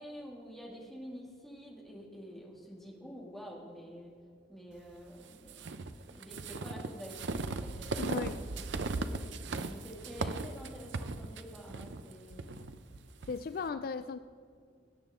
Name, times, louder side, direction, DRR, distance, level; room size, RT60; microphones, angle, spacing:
voice 1, 0.0-4.1 4.5-5.7 6.1-9.3 9.7-12.6, equal, ahead, -3 dB, 2.3 m, -48 dB
sound 1, 5.5-13.4, right 3 dB, 70° right, 0.6 m, -38 dB
voice 2, 8.0-8.4 13.3-14.2, left 5 dB, 50° left, 12 dB, 0.3 m, -36 dB
20.5 x 9.3 x 3.7 m, 2.2 s
head